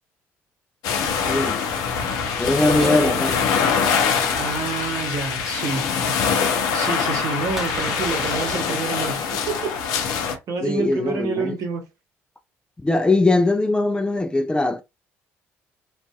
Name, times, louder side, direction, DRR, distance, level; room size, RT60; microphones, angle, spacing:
sound 1, 0.8-10.3, left 6 dB, 70° left, 0.6 m, -23 dB
voice 1, 1.3-1.6 2.4-3.4 10.6-11.5 12.8-14.8, left 2 dB, 15° left, 0.4 m, -21 dB
sound 2, 2.5-4.1 4.7-5.6 6.0-8.7, equal, 5° right, 1.2 m, -37 dB
voice 2, 2.6-3.4 4.3-5.8 6.7-9.8 10.5-11.8, right 5 dB, 55° right, 0.9 m, -28 dB
2.6 x 2.4 x 2.2 m
hypercardioid pair, 55°, 7 cm